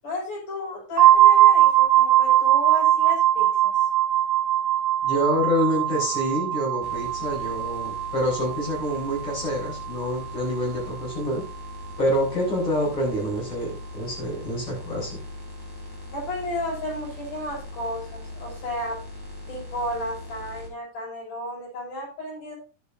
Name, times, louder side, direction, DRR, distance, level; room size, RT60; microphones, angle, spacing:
voice 1, 0.0-3.8 16.1-19.0 19.5-22.6, left 1 dB, 80° left, -3 dB, 7.9 m, -33 dB
sound 1, 1.0-10.6, right 12 dB, 45° right, 2.3 m, -21 dB
voice 2, 5.0-11.4 12.0-15.2, equal, 45° left, -3 dB, 8.5 m, -27 dB
sound 2, 6.8-20.7, left 2 dB, 5° left, 3.9 m, -40 dB
12.0 x 11.5 x 2.7 m, 0.34 s
omnidirectional pair, 3.6 m